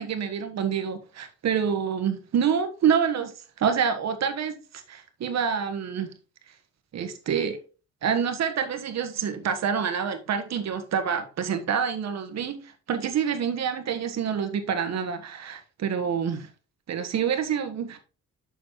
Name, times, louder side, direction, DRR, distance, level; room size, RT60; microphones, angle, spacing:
voice 1, 0.0-6.1 6.9-7.6 8.0-16.5 16.9-18.0, right 7 dB, 60° right, 1.4 m, -27 dB
7.2 x 6.5 x 3.1 m
cardioid pair, 90°, 30 cm